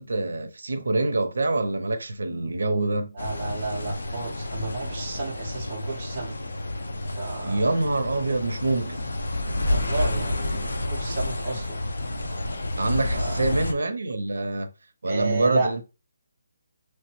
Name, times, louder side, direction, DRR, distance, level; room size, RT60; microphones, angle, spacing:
voice 1, 0.0-3.1 7.4-9.0 12.8-14.7 15.0-15.8, right 2 dB, 85° right, 0.5 m, -25 dB
voice 2, 3.1-6.4 7.1-7.7 9.7-11.8 13.1-13.6 15.0-15.7, right 3 dB, 20° right, 0.7 m, -32 dB
sound 1, 3.2-13.7, left 1 dB, 80° left, 0.5 m, -30 dB
3.1 x 2.1 x 2.9 m
hypercardioid pair, 180°, 0 cm